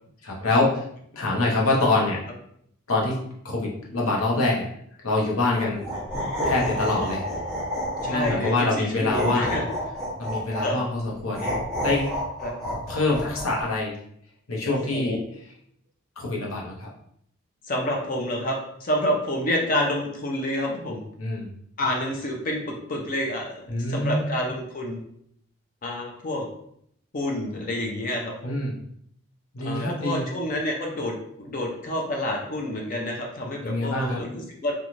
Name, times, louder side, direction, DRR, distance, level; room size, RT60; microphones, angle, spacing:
voice 1, 0.2-0.8 1.2-2.2 2.9-4.7 5.0-5.8 6.4-7.2 8.1-9.5 10.2-11.5 11.8-12.1 12.9-13.9 14.5-15.2 16.2-16.9 21.2-21.5 23.7-24.3 28.4-28.7 29.5-30.3 33.6-34.2, left 2 dB, 75° left, -2 dB, 0.8 m, -25 dB
sound 1, 5.7-8.6 9.1-10.7 11.3-13.6, equal, ahead, 0.8 m, -29 dB
voice 2, 8.0-9.6 10.6-10.8 12.4-12.5 14.7-15.2 17.6-21.0 21.8-25.0 25.8-26.5 27.1-28.6 29.6-34.7, left 1 dB, 40° left, 0 dB, 0.5 m, -28 dB
3.0 x 2.3 x 2.5 m, 0.70 s
head